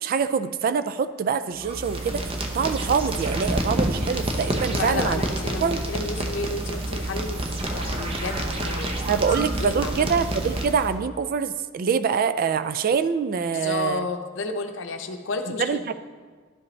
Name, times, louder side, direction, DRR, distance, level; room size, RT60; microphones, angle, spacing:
voice 1, 0.0-5.2 5.6-5.8 9.1-14.1 15.6-15.9, right 6 dB, 45° right, 12 dB, 0.3 m, -25 dB
sound 1, 1.6-11.0, right 1 dB, 30° right, 0.7 m, -28 dB
voice 2, 4.7-7.4 7.7-8.9 9.2-10.2 13.5-15.9, left 3 dB, 70° left, 6 dB, 0.6 m, -32 dB
12.0 x 5.1 x 3.2 m, 1.5 s
head